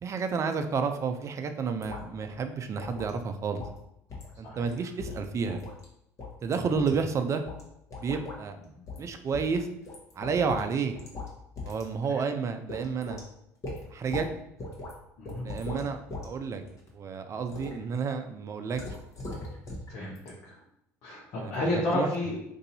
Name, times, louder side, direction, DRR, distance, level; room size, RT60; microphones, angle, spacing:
voice 1, 0.0-3.6 4.4-5.6 6.4-7.4 8.0-8.6 9.0-9.7 10.2-10.9 11.6-13.2 13.9-14.3 15.4-16.6 16.9-18.8 21.4-21.5 21.9-22.1, right 5 dB, 40° right, 7 dB, 0.5 m, -30 dB
sound 1, 1.8-2.0 2.3-2.4 2.8-3.1 3.6-3.8 4.1-4.3 4.6-4.7 5.0-5.8 6.2-6.9 7.4-7.6 7.9-8.4 8.9-9.0 9.3-10.7 10.9-11.3 11.6-11.9 12.2-12.3 12.7-13.2 13.6-14.3 14.6-14.9 15.3-16.3 16.6-16.9 17.5-17.8 18.7-19.9 20.2-20.3, left 2 dB, 40° left, 1.1 m, -39 dB
voice 2, 15.2-15.5 19.9-20.2 20.5-20.6 21.0-22.4, left 1 dB, 65° left, -5 dB, 0.9 m, -31 dB
2.7 x 2.6 x 4.1 m, 0.79 s
hypercardioid pair, 75°, 8 cm